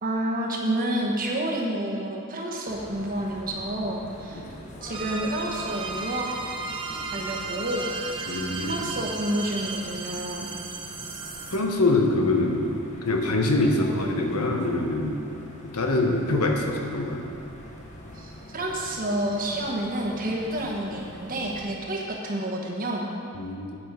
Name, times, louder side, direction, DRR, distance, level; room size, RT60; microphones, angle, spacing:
voice 1, 0.0-4.4 4.8-6.3 7.1-8.0 8.7-10.5 18.1-23.1, right 1 dB, 40° right, -1 dB, 1.2 m, -29 dB
sound 1, 2.7-21.6, left 1 dB, 30° left, 1.0 m, -44 dB
sound 2, 4.9-11.6, right 4 dB, 25° right, 0.7 m, -35 dB
voice 2, 8.3-8.9 11.5-12.6 13.0-15.2 15.6-17.3 23.3-23.8, left 2 dB, 85° left, 2 dB, 1.1 m, -24 dB
9.0 x 7.4 x 5.1 m, 2.7 s
head